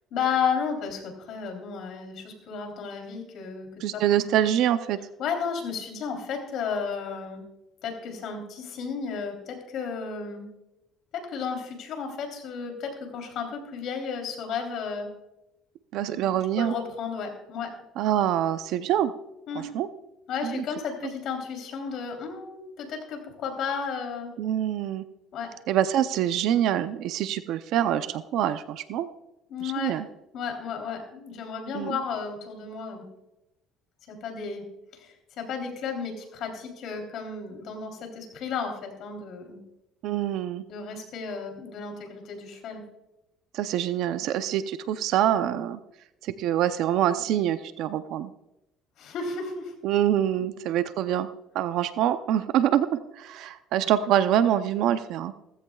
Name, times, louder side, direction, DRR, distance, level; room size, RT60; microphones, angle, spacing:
voice 1, 0.1-4.3 5.2-7.4 7.8-10.5 11.1-15.1 16.1-16.2 16.6-17.7 19.5-19.7 20.3-24.3 25.3-25.5 29.5-29.9 30.3-33.1 34.1-34.7 34.9-39.6 40.7-42.8 49.0-49.7, left 6 dB, 60° left, 3 dB, 3.3 m, -33 dB
voice 2, 3.8-5.0 15.9-16.7 18.0-19.1 19.7-19.9 20.4-20.6 24.4-25.0 25.7-29.1 29.6-30.1 31.7-32.0 40.0-40.6 43.5-45.8 46.2-48.3 49.8-51.3 51.5-52.9 53.2-55.3, right 11 dB, 65° right, 11 dB, 0.6 m, -25 dB
17.0 x 15.0 x 2.3 m, 0.91 s
cardioid pair, 135°, 0 cm